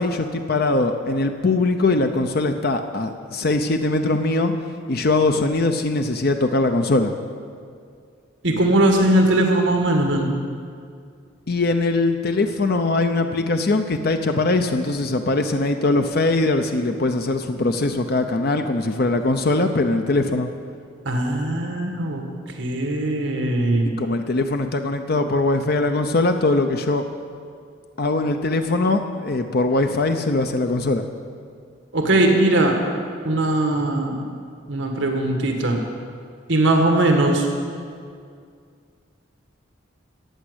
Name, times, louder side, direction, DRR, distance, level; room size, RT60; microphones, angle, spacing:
voice 1, 0.0-4.5 4.9-7.1 11.5-20.5 24.0-27.0 28.0-31.0, left 2 dB, 50° left, 6 dB, 0.7 m, -21 dB
voice 2, 8.4-10.3 21.0-22.2 22.6-23.9 31.9-32.7 33.2-34.3 34.7-35.8 36.5-37.5, right 1 dB, 70° right, 2 dB, 1.6 m, -19 dB
14.5 x 8.8 x 8.0 m, 2.2 s
head